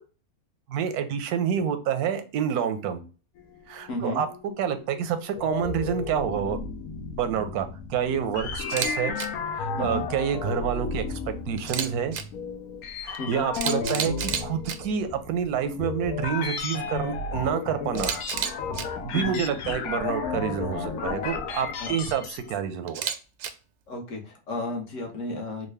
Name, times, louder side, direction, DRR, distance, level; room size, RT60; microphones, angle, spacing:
voice 1, 0.7-3.0 3.7-6.6 7.2-9.1 9.6-11.2 11.5-12.2 13.0-18.2 19.0-23.0, right 8 dB, 85° right, 9 dB, 1.1 m, -28 dB
sound 1, 3.4-22.6, left 5 dB, 80° left, 1.1 m, -33 dB
voice 2, 3.9-4.2 9.8-10.1 13.2-13.4 19.1-19.4 21.8-21.9 23.9-25.7, left 2 dB, 60° left, 2 dB, 1.2 m, -33 dB
Camera, 8.6-8.9 9.2-9.3 11.6-12.2 13.1-13.2 13.5-14.8 17.9-18.8 22.9-23.5, right 8 dB, 70° right, 0.7 m, -30 dB
3.8 x 2.2 x 3.2 m, 0.35 s
omnidirectional pair, 1.6 m